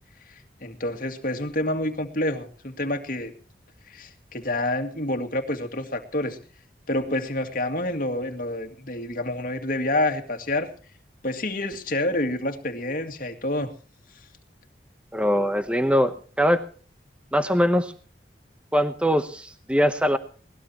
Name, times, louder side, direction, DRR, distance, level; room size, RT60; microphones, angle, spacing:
voice 1, 0.6-3.3 3.9-6.4 6.9-10.7 11.2-13.7, left 1 dB, 50° left, 5 dB, 2.2 m, -28 dB
voice 2, 15.1-16.6 17.3-17.9 18.7-20.2, equal, 5° right, 9 dB, 0.9 m, -22 dB
21.0 x 19.0 x 3.0 m, 0.40 s
head